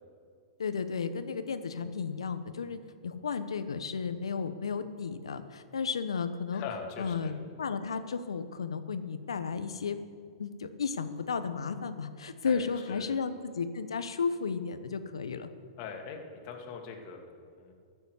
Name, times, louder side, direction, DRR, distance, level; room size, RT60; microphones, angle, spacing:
voice 1, 0.6-6.6 7.0-10.0 10.4-15.5, left 5 dB, 85° left, 11 dB, 0.9 m, -33 dB
voice 2, 6.5-7.4 12.4-13.1 15.8-16.2 16.4-17.7, left 6 dB, 45° left, 2 dB, 2.3 m, -41 dB
13.5 x 7.0 x 8.1 m, 2.3 s
hypercardioid pair, 115°, 3 cm